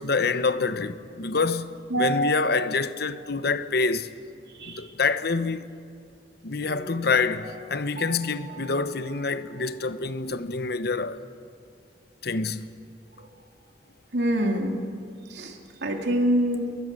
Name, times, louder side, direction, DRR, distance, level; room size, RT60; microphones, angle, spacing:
voice 1, 0.0-4.1 4.6-5.7 6.4-11.2 12.2-12.8, left 4 dB, 65° left, 1.0 m, -26 dB
voice 2, 1.9-2.3 4.5-4.9 14.1-14.8 15.3-16.7, right 1 dB, 75° right, 2.9 m, -25 dB
Piano, 6.6-10.4 10.7-10.8, right 3 dB, 55° right, 2.7 m, -45 dB
28.0 x 22.5 x 7.7 m
head